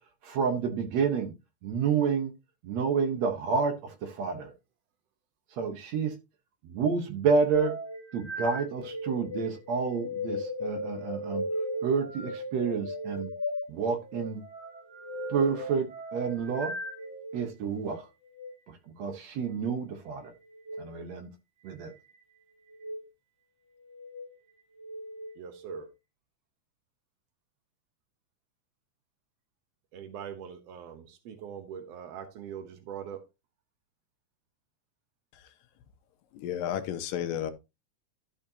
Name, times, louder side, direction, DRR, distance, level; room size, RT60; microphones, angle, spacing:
voice 1, 0.2-1.3 1.6-2.3 2.6-4.5 5.5-6.1 6.6-7.8 8.1-11.4 11.8-13.3 13.7-14.4 15.3-15.9 16.1-16.7 17.3-18.1 18.7-20.3 20.8-21.3 21.6-21.9, right 5 dB, 60° right, 1.9 m, -29 dB
sound 1, 7.5-17.5 18.2-18.5 20.5-20.8 21.7-22.2 22.7-23.0 23.8-24.3 24.8-25.8, left 1 dB, 20° right, 3.7 m, -37 dB
voice 2, 25.4-25.9 29.9-33.2, right 8 dB, 85° right, 1.4 m, -42 dB
voice 3, 36.3-37.5, left 10 dB, 75° left, 2.3 m, -33 dB
12.5 x 6.5 x 2.8 m
omnidirectional pair, 4.2 m